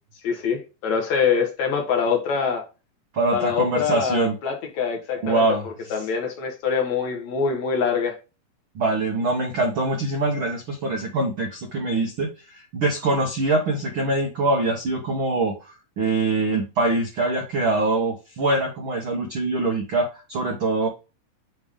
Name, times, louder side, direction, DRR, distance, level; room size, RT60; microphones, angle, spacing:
voice 1, 0.2-2.6 3.3-8.2, left 6 dB, 60° left, 3 dB, 2.3 m, -24 dB
voice 2, 3.1-4.3 5.2-5.9 8.7-20.9, right 2 dB, 70° right, 2 dB, 1.2 m, -24 dB
8.7 x 3.5 x 3.6 m, 0.29 s
omnidirectional pair, 4.0 m